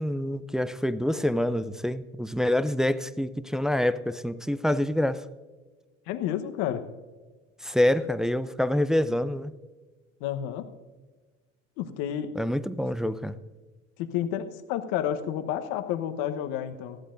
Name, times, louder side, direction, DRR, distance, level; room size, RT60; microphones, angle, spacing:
voice 1, 0.0-5.2 7.6-9.5 12.4-13.4, left 1 dB, ahead, 13 dB, 0.4 m, -26 dB
voice 2, 6.1-6.8 10.2-10.7 11.8-12.3 14.0-17.0, left 10 dB, 65° left, 9 dB, 1.1 m, -30 dB
19.5 x 14.5 x 2.6 m, 1.3 s
hypercardioid pair, 75°, 40 cm